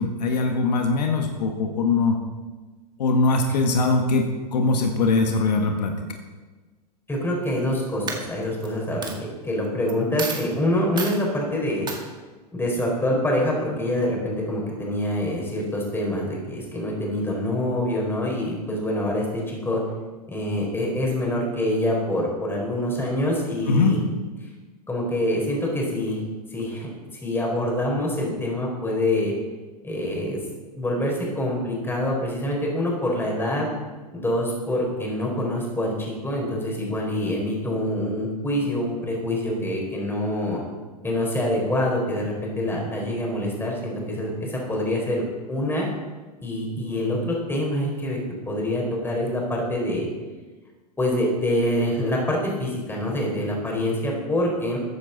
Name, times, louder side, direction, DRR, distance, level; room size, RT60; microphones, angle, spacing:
voice 1, 0.0-2.2 3.0-6.0 23.7-23.9, left 3 dB, 75° left, 3 dB, 1.6 m, -21 dB
voice 2, 7.1-11.9 12.5-19.8 20.3-24.0 24.9-26.2 26.5-26.9 27.2-29.3 29.8-30.4 30.7-33.7 34.1-40.6 41.0-45.9 46.4-48.2 48.5-50.1 51.0-54.8, left 1 dB, 10° left, -2 dB, 4.5 m, -25 dB
Coin (dropping), 7.4-7.7 8.1-8.7 9.0-9.1 9.9-10.0 10.2-10.5 11.0-11.2 11.9-12.0, right 5 dB, 20° right, 1.9 m, -31 dB
14.0 x 9.9 x 4.1 m, 1.3 s
hypercardioid pair, 110°, 21 cm